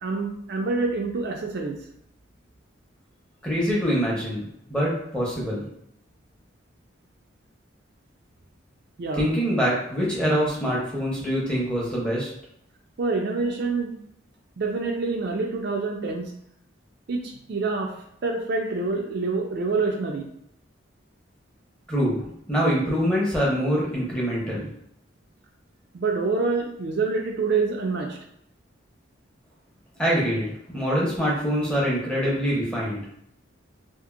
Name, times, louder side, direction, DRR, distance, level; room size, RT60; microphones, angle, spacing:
voice 1, 0.0-1.8 9.0-9.2 13.0-13.9 14.6-16.3 17.1-17.9 18.2-20.3 25.9-28.2, right 4 dB, 55° right, 1 dB, 0.4 m, -26 dB
voice 2, 3.4-5.6 9.2-12.3 21.9-24.7 30.0-33.0, equal, 5° left, -6 dB, 0.7 m, -24 dB
2.8 x 2.5 x 2.4 m, 0.73 s
head